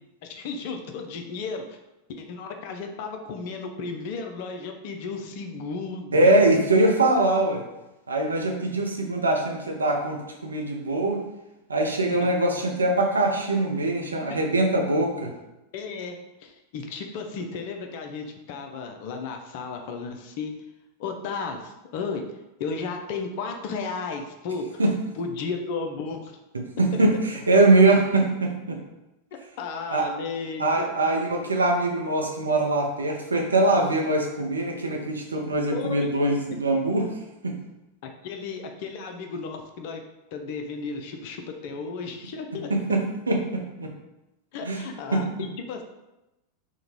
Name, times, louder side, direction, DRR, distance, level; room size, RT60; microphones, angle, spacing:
voice 1, 0.2-1.8 2.2-6.5 12.2-12.3 15.7-20.5 21.0-22.2 22.6-24.8 25.2-26.4 26.9-27.0 29.6-30.8 35.7-36.1 38.2-40.0 40.3-42.7 44.5-45.8, left 4 dB, 50° left, 4 dB, 0.4 m, -34 dB
voice 2, 6.1-7.6 8.1-11.2 11.7-15.3 24.8-24.9 26.8-28.8 29.9-30.1 30.6-37.1 37.4-37.6 42.7-43.9 44.7-44.8 45.1-45.2, right 2 dB, 75° right, 1 dB, 0.5 m, -22 dB
3.6 x 2.2 x 3.1 m, 0.96 s
figure-of-eight pair, 90°, 0 cm